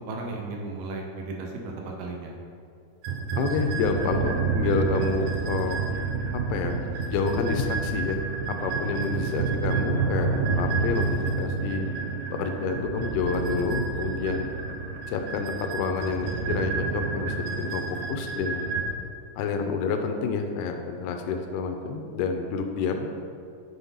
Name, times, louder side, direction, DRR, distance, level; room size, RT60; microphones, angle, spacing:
voice 1, 0.0-2.4, right 3 dB, 75° right, 0 dB, 2.3 m, -35 dB
sound 1, 3.0-18.9, right 4 dB, 90° right, 1.7 m, -29 dB
voice 2, 3.4-5.8 6.5-6.8 7.1-8.2 8.6-10.3 10.6-11.9 12.3-14.5 15.1-17.8 18.1-18.7 19.4-23.1, left 5 dB, 80° left, 4 dB, 2.5 m, -28 dB
9.6 x 3.8 x 5.5 m, 2.3 s
omnidirectional pair, 4.7 m